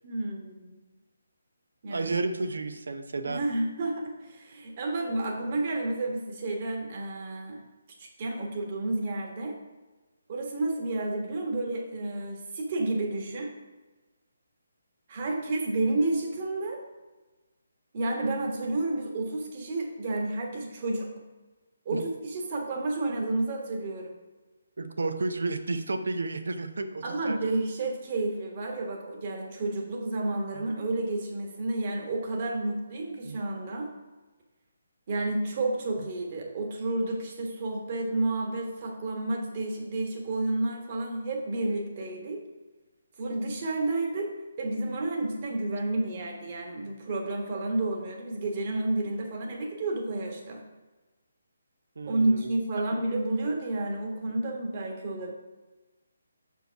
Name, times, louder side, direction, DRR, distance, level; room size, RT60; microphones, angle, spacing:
voice 1, 0.0-0.8 1.8-2.2 3.2-7.6 8.0-9.6 10.3-13.5 15.1-16.8 17.9-21.1 21.8-24.1 27.0-33.9 35.1-42.4 43.2-50.6 52.0-55.3, right 2 dB, 40° right, 1 dB, 1.4 m, -30 dB
voice 2, 1.9-3.4 21.9-22.0 24.8-27.4 33.2-33.4 52.0-52.8, right 3 dB, 65° right, 8 dB, 0.6 m, -32 dB
6.7 x 4.7 x 4.6 m, 1.2 s
figure-of-eight pair, 145°, 0 cm